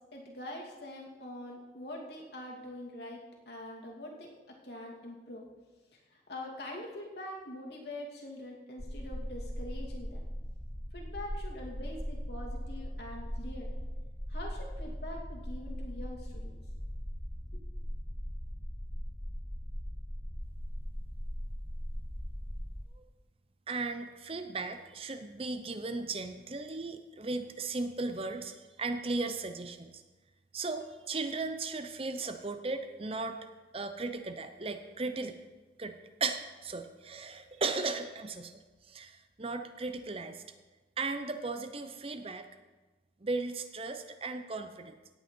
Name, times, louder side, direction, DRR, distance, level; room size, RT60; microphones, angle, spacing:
voice 1, 0.1-5.5 5.9-10.2 10.9-13.7 14.3-16.6 17.5-17.6, left 1 dB, 70° left, -1 dB, 2.5 m, -44 dB
sound 1, 8.8-22.8, equal, 10° left, 0.9 m, -39 dB
voice 2, 23.7-29.9 30.5-33.4 33.7-35.4 35.8-38.6 38.9-40.4 41.0-42.5 43.2-45.0, right 3 dB, 35° right, 8 dB, 0.7 m, -36 dB
17.0 x 8.6 x 4.5 m, 1.2 s
head